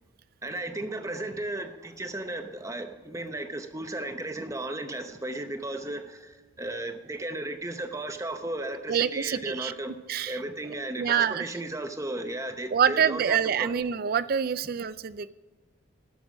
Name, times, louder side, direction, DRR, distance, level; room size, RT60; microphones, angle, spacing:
voice 1, 0.4-9.9 10.2-13.7, right 2 dB, 15° right, 7 dB, 0.7 m, -35 dB
voice 2, 8.9-9.7 10.1-10.4 11.0-11.5 12.7-15.3, right 7 dB, 45° right, 16 dB, 0.4 m, -26 dB
12.5 x 6.2 x 6.2 m, 1.3 s
head